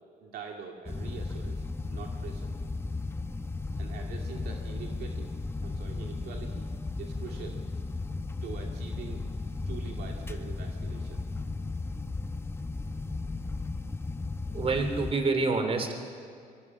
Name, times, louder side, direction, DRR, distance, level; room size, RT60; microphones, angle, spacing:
voice 1, 0.2-1.6 1.9-2.5 3.8-5.3 5.6-6.6 7.0-7.6 8.4-9.2 9.7-11.2, right 6 dB, 70° right, 1 dB, 2.2 m, -43 dB
sound 1, 0.9-15.1, left 3 dB, 15° left, 0.9 m, -35 dB
voice 2, 14.5-16.0, right 3 dB, 35° right, 6 dB, 3.4 m, -27 dB
24.0 x 22.5 x 6.3 m, 2.3 s
cardioid pair, 110°, 17 cm